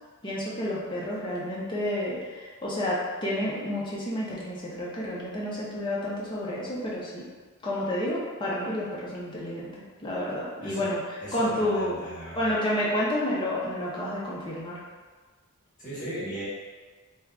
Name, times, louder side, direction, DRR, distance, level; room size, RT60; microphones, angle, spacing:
voice 1, 0.2-7.2 7.6-9.7 10.0-11.0 11.3-12.0 12.3-14.8, left 1 dB, 20° left, -6 dB, 0.6 m, -30 dB
voice 2, 10.6-10.9 11.2-12.5 15.8-16.4, equal, 40° left, -10 dB, 1.2 m, -37 dB
2.6 x 2.3 x 3.4 m, 1.4 s
head